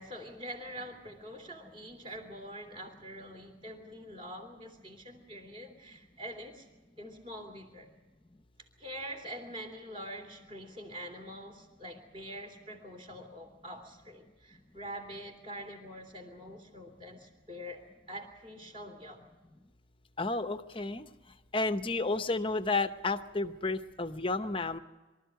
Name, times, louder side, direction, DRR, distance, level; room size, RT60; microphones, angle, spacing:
voice 1, 0.0-6.7 7.0-7.9 8.8-19.2, equal, 30° right, 3 dB, 3.2 m, -45 dB
voice 2, 20.2-21.1 21.5-24.8, left 3 dB, 25° left, 10 dB, 0.8 m, -31 dB
24.0 x 13.5 x 9.3 m, 1.2 s
head